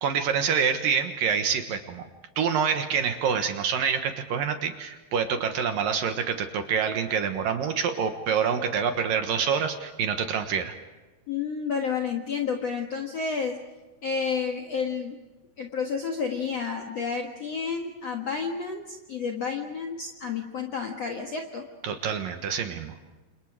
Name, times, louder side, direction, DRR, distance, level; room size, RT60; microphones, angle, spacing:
voice 1, 0.0-2.1 2.4-10.7 21.8-22.9, right 7 dB, 65° right, 7 dB, 2.7 m, -26 dB
voice 2, 11.3-13.6 14.0-15.2 15.6-21.7, left 5 dB, 55° left, 3 dB, 1.9 m, -30 dB
29.5 x 26.5 x 4.9 m, 1.2 s
omnidirectional pair, 4.9 m